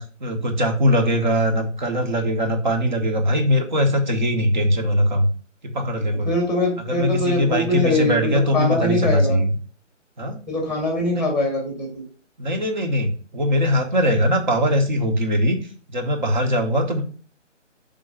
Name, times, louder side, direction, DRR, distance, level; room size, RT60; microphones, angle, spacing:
voice 1, 0.0-5.3 5.6-6.3 6.8-9.5 10.2-10.4 11.1-11.3 12.4-15.6 15.9-17.0, equal, 40° right, 4 dB, 1.3 m, -21 dB
voice 2, 6.2-9.4 10.5-11.9, left 2 dB, ahead, 0 dB, 1.4 m, -22 dB
5.7 x 3.9 x 5.7 m, 0.41 s
figure-of-eight pair, 150°, 37 cm